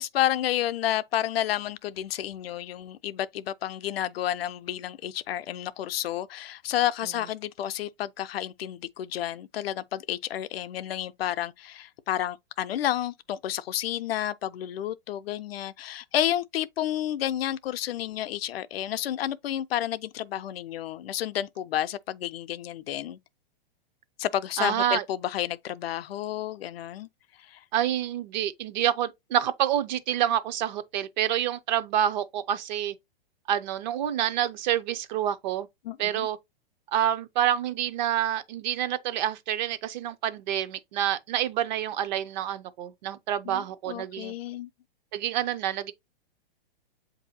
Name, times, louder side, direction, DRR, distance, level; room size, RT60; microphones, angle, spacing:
voice 1, 0.0-23.2 24.2-27.1 27.4-27.6 35.8-36.3 43.4-44.7, left 12 dB, 80° left, 0.5 m, -30 dB
voice 2, 24.6-25.0 27.7-32.9 33.5-35.7 36.0-36.4 36.9-44.3 45.1-45.9, right 11 dB, 50° right, 0.5 m, -27 dB
7.4 x 2.7 x 2.7 m
hypercardioid pair, 135°, 30 cm